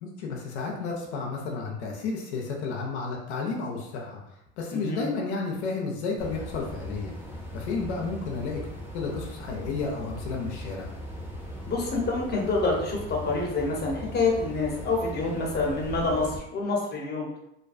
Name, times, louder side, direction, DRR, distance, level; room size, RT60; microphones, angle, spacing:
voice 1, 0.0-4.2 4.6-7.1 7.5-8.6 8.9-10.9, left 4 dB, 85° left, -1 dB, 0.6 m, -32 dB
voice 2, 4.7-5.0 11.6-17.3, left 3 dB, 30° left, -2 dB, 0.9 m, -27 dB
sound 1, 6.2-16.4, equal, 5° right, 0.6 m, -39 dB
2.5 x 2.2 x 2.5 m, 0.81 s
hypercardioid pair, 85°, 33 cm